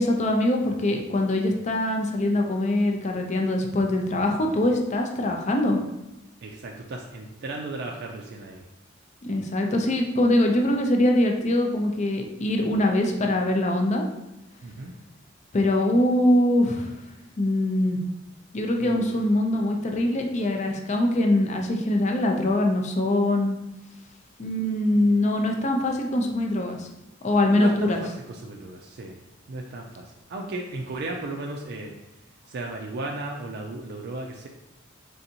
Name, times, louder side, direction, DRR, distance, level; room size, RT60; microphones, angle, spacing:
voice 1, 0.0-5.8 9.2-14.1 15.5-16.9 17.4-18.0 18.5-23.6 24.4-26.9 27.2-28.0, left 1 dB, 35° left, 2 dB, 0.5 m, -23 dB
voice 2, 6.4-8.6 14.6-14.9 18.8-19.0 27.5-29.2 29.5-31.9 32.5-34.5, right 2 dB, 55° right, 0 dB, 0.4 m, -35 dB
3.9 x 3.4 x 2.8 m, 0.92 s
head